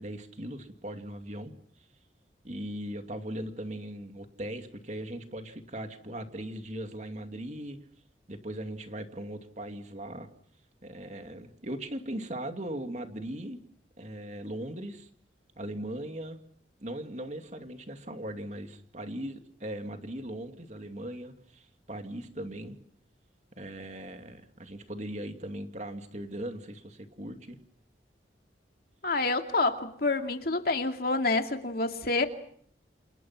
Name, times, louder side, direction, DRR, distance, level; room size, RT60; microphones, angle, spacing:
voice 1, 0.0-1.5 1.8-1.9 2.4-7.8 8.3-10.3 10.8-13.6 14.0-15.1 15.6-16.4 16.8-22.8 23.5-27.6, right 1 dB, 40° right, 6 dB, 2.5 m, -39 dB
voice 2, 29.0-32.3, left 3 dB, 55° left, 5 dB, 2.6 m, -28 dB
29.0 x 28.0 x 6.0 m, 0.63 s
head